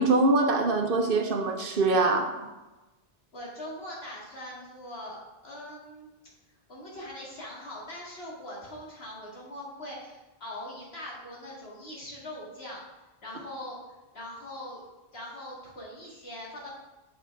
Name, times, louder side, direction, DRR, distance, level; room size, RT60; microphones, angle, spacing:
voice 1, 0.0-2.3, right 3 dB, 60° right, 4 dB, 1.0 m, -23 dB
voice 2, 3.3-5.2 5.4-6.1 6.7-12.8 13.2-13.8 14.1-14.8 15.1-16.7, left 1 dB, 75° left, -4 dB, 2.6 m, -41 dB
7.0 x 5.6 x 4.7 m, 1.1 s
omnidirectional pair, 1.0 m